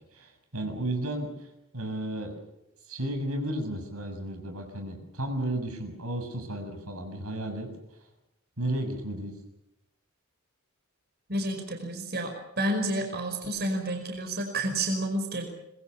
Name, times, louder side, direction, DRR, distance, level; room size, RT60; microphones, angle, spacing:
voice 1, 0.1-1.3 1.7-2.4 2.9-7.7 8.6-9.3, right 1 dB, 85° right, 5 dB, 6.8 m, -33 dB
voice 2, 11.3-15.4, right 1 dB, 45° right, 4 dB, 5.2 m, -30 dB
25.5 x 22.0 x 7.1 m, 0.88 s
head